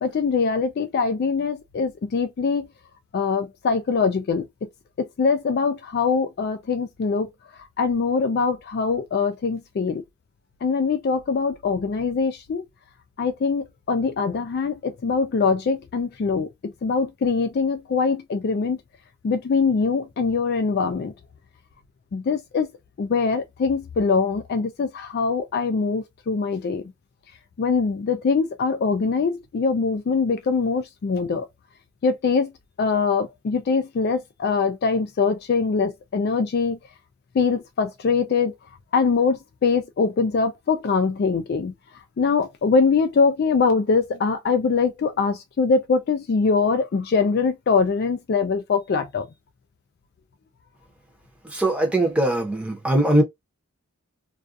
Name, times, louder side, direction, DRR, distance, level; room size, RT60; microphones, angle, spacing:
voice 1, 0.0-2.7 3.1-4.4 5.0-7.3 7.8-10.0 10.6-12.6 13.2-18.8 19.2-21.1 22.1-22.7 23.0-26.8 27.6-31.5 32.0-32.5 32.8-36.8 37.3-38.5 38.9-41.7 42.2-49.3, left 5 dB, 45° left, 0.3 m, -23 dB
voice 2, 51.5-53.2, right 1 dB, 5° right, 0.7 m, -20 dB
2.4 x 2.2 x 2.5 m
head